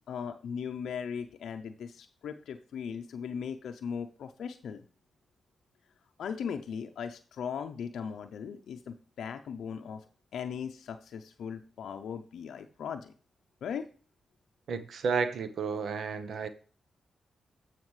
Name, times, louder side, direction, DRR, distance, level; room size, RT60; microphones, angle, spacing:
voice 1, 0.0-4.8 6.2-10.0 10.3-13.1 13.6-13.9, left 7 dB, 80° left, 0.5 m, -38 dB
voice 2, 14.7-16.5, right 5 dB, 75° right, 0.7 m, -32 dB
14.0 x 5.8 x 3.2 m
supercardioid pair, 50°, 0 cm